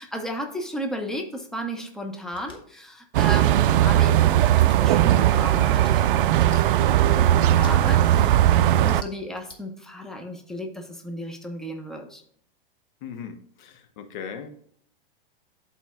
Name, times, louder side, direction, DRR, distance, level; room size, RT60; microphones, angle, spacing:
voice 1, 0.0-12.2, equal, ahead, 3 dB, 1.0 m, -34 dB
sound 1, 2.3-2.6 3.5-3.7 4.5-4.8 5.7-5.9 6.4-6.6 7.5-7.7 8.7-9.6, left 2 dB, 15° left, 1.5 m, -46 dB
sound 2, 3.1-9.0, right 12 dB, 65° right, 0.4 m, -18 dB
voice 2, 8.1-8.5 13.0-14.5, left 7 dB, 55° left, 7 dB, 1.0 m, -38 dB
12.5 x 4.3 x 2.4 m, 0.63 s
hypercardioid pair, 105°, 29 cm